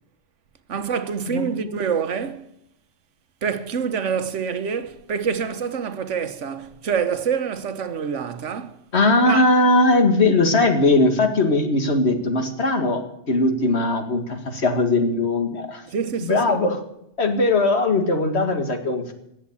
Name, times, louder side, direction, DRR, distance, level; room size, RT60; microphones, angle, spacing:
voice 1, 0.7-2.5 3.4-8.8 9.2-9.5 15.9-16.7, right 6 dB, 85° right, 1.4 m, -26 dB
voice 2, 8.9-15.8 16.2-16.8 17.2-19.1, left 2 dB, 65° left, 2.1 m, -19 dB
17.0 x 7.3 x 8.5 m
omnidirectional pair, 1.2 m